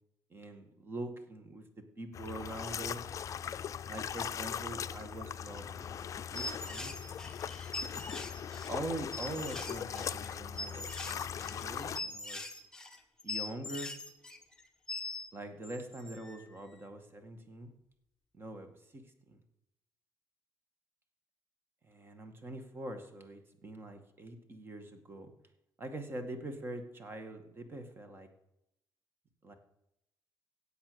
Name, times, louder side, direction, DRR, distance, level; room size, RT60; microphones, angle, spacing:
voice 1, 0.3-1.6 2.0-3.1 3.9-6.9 8.7-12.5 13.2-13.9 15.3-17.7 18.3-19.4 21.8-25.3 25.8-28.3 29.4-29.5, right 1 dB, 30° right, 7 dB, 2.1 m, -44 dB
sound 1, 2.1-12.0, left 8 dB, 45° left, 0.5 m, -40 dB
sound 2, 6.3-15.3 15.6-16.5, left 2 dB, 10° left, 1.4 m, -42 dB
16.5 x 8.0 x 7.0 m, 0.84 s
cardioid pair, 120°, 8 cm